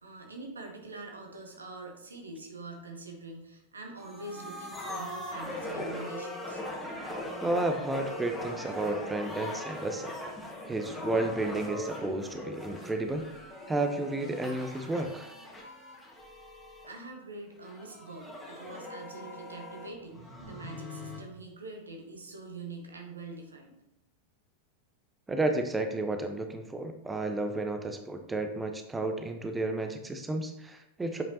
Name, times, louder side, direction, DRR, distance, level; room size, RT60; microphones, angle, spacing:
voice 1, 0.0-6.6 16.2-16.3 16.9-23.7, right 2 dB, 75° right, 2 dB, 1.2 m, -44 dB
sound 1, 4.0-17.0 17.6-21.2, left 1 dB, 10° left, 1.5 m, -40 dB
voice 2, 7.4-10.1 10.6-13.2 13.7-15.3 25.3-31.2, right 2 dB, 10° right, 5 dB, 0.6 m, -32 dB
7.6 x 5.2 x 2.8 m, 0.83 s
figure-of-eight pair, 90°, 0 cm